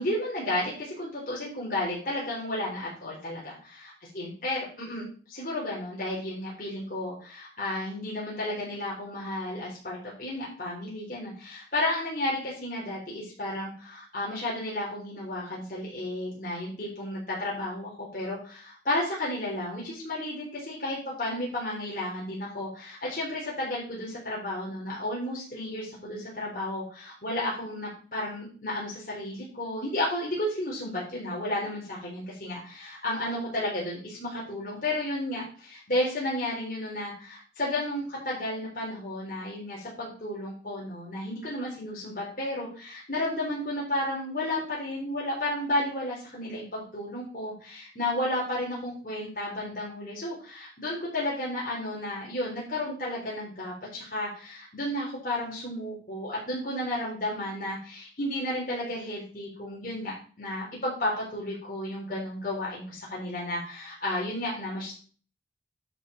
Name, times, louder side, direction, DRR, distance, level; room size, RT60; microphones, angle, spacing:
voice 1, 0.0-64.9, left 1 dB, 50° left, -5 dB, 3.7 m, -32 dB
10.5 x 4.9 x 5.0 m, 0.40 s
head